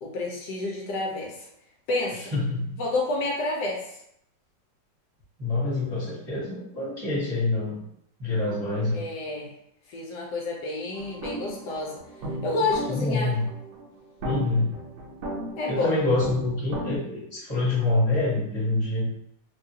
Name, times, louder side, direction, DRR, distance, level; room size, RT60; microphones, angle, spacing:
voice 1, 0.0-1.5 1.9-2.3 2.8-3.8 8.9-9.5 9.9-12.0 12.4-13.3 15.6-15.9, left 2 dB, 70° left, -2 dB, 1.2 m, -29 dB
voice 2, 2.3-2.8 5.4-7.8 8.2-9.0 12.6-13.5 14.2-14.8 15.7-19.1, left 2 dB, 15° right, -10 dB, 0.9 m, -26 dB
sound 1, 10.9-17.0, right 1 dB, 80° right, 1.3 m, -36 dB
3.4 x 2.3 x 2.7 m, 0.73 s
omnidirectional pair, 2.0 m